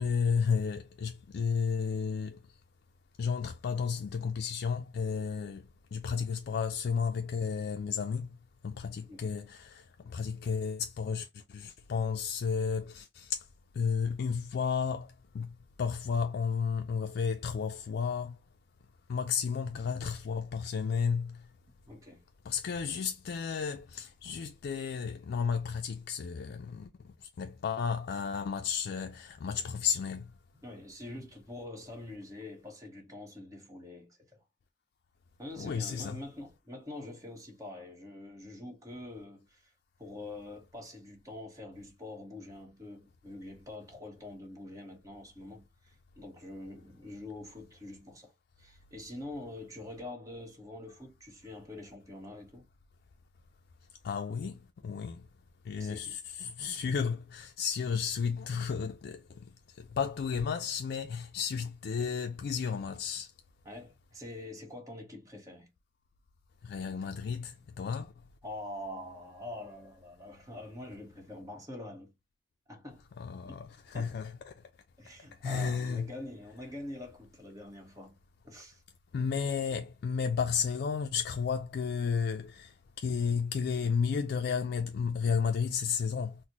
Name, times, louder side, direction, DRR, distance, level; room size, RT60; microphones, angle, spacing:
voice 1, 0.0-2.4 3.2-8.3 8.6-13.5 13.7-18.4 19.1-21.4 22.5-30.3 35.6-36.2 54.0-55.3 55.6-63.3 66.6-68.1 73.2-74.5 75.4-76.1 79.1-86.4, left 6 dB, 60° left, 0.3 m, -33 dB
voice 2, 21.9-22.2 30.5-34.4 35.4-39.7 40.0-48.3 48.6-52.6 55.8-56.1 63.6-65.7 67.0-67.2 67.5-67.7 68.4-72.1 72.7-73.0 73.4-73.6 73.9-74.1 75.0-78.2 78.4-78.8, left 1 dB, 20° right, 1.0 m, -45 dB
4.0 x 2.0 x 2.8 m
head